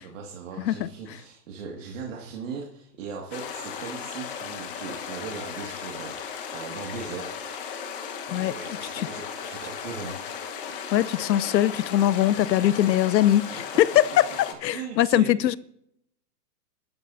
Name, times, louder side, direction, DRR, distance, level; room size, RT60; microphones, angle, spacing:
voice 1, 0.0-7.3 8.3-10.2 14.7-15.5, right 5 dB, 50° right, 2.3 m, -38 dB
voice 2, 0.6-0.9 8.3-8.5 10.9-15.6, left 12 dB, 90° left, 0.8 m, -22 dB
sound 1, 3.3-14.5, left 7 dB, 35° left, 1.4 m, -36 dB
28.0 x 12.5 x 2.8 m
supercardioid pair, 180°, 49 cm